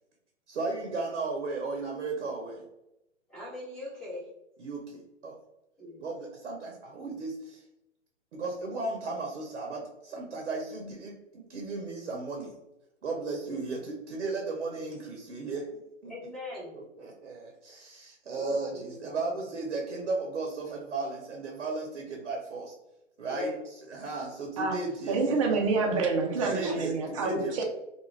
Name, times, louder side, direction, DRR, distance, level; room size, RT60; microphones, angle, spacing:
voice 1, 0.5-2.6 4.6-5.4 6.0-7.6 8.3-12.6 13.0-15.7 16.0-16.1 16.7-22.8 23.2-23.5 23.9-25.2 26.4-27.5, right 3 dB, 65° right, 1 dB, 0.7 m, -35 dB
voice 2, 3.3-4.3 5.8-6.0 13.5-13.6 16.0-16.7 18.3-19.3 23.3-23.6 26.6-27.4, left 1 dB, ahead, -11 dB, 0.8 m, -40 dB
voice 3, 25.1-27.6, right 3 dB, 30° right, 1 dB, 0.4 m, -27 dB
2.3 x 2.3 x 3.0 m, 0.89 s
figure-of-eight pair, 125°, 37 cm